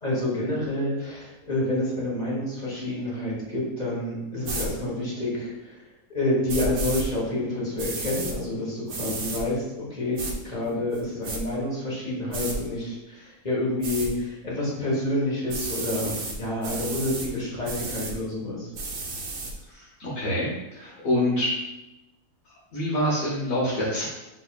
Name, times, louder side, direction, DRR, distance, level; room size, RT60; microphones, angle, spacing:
voice 1, 0.0-5.8 6.1-18.7, left 1 dB, 30° left, -5 dB, 1.2 m, -28 dB
sound 1, 4.4-4.7 6.5-7.0 7.8-8.3 8.9-9.4 10.2-10.3 10.9-11.4 12.3-12.6 13.8-14.1 15.5-16.4 16.6-17.3 17.6-18.1 18.7-19.5, right 3 dB, 65° right, 1.2 m, -32 dB
voice 2, 19.7-21.5 22.7-24.1, left 1 dB, 65° left, -6 dB, 1.4 m, -26 dB
6.7 x 3.5 x 2.3 m, 0.97 s
omnidirectional pair, 1.6 m